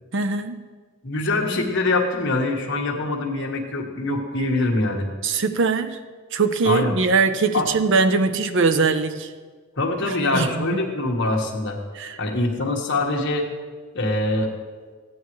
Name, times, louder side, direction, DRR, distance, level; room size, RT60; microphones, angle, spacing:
voice 1, 0.1-0.6 5.2-6.0 6.3-9.3 10.3-10.8 11.9-12.2, right 4 dB, 55° right, 10 dB, 0.5 m, -21 dB
voice 2, 1.0-5.1 6.6-6.9 7.5-7.7 9.8-11.8 12.2-13.5 13.9-14.5, left 2 dB, 55° left, 1 dB, 1.5 m, -23 dB
15.5 x 9.4 x 3.1 m, 1.5 s
head